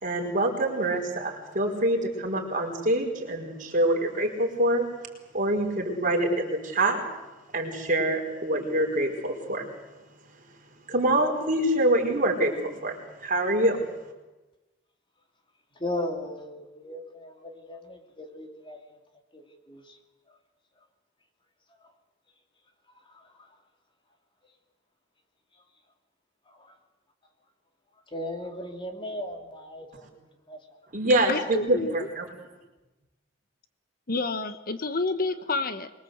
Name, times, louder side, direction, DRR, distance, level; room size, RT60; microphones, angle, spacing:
voice 1, 0.0-4.8 5.3-7.0 7.5-9.7 10.9-13.8 30.9-32.3, right 1 dB, 45° right, 2 dB, 5.0 m, -25 dB
voice 2, 15.8-19.0 19.3-20.0 21.8-21.9 22.9-23.5 26.5-26.7 28.1-30.6, left 1 dB, 25° left, 4 dB, 2.9 m, -37 dB
voice 3, 31.3-32.1 34.1-35.9, left 3 dB, 50° left, 11 dB, 1.1 m, -29 dB
24.5 x 22.5 x 8.0 m, 1.1 s
head